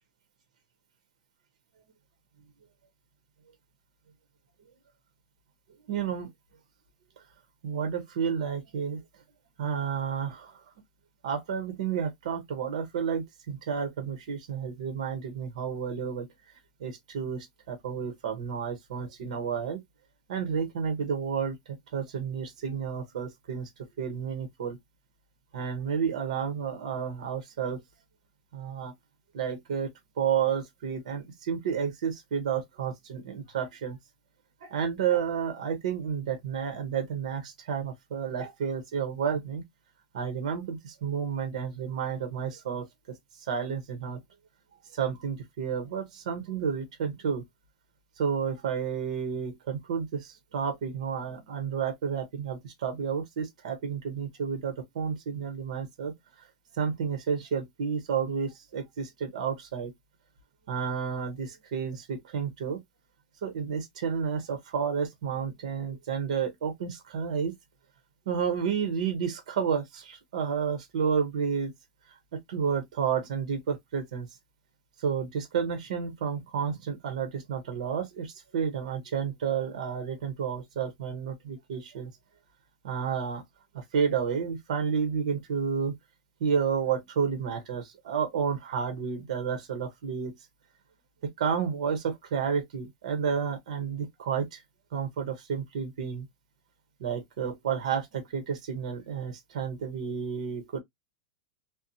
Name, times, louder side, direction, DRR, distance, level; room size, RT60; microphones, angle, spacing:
voice 1, 5.9-6.3 7.6-9.0 9.6-10.7 11.2-16.3 16.8-19.8 20.3-23.7 24.0-24.8 25.5-27.8 28.5-28.9 29.3-29.9 30.2-34.0 34.6-39.6 40.1-44.2 44.9-47.4 48.2-56.5 56.7-59.9 60.7-62.8 63.4-67.5 68.3-71.7 72.1-74.3 75.0-82.1 82.8-83.4 83.7-86.0 86.4-90.3 91.2-94.6 94.9-96.3 97.0-100.8, right 7 dB, 65° right, 0.8 m, -31 dB
2.7 x 2.0 x 2.6 m
supercardioid pair, 180°, 4 cm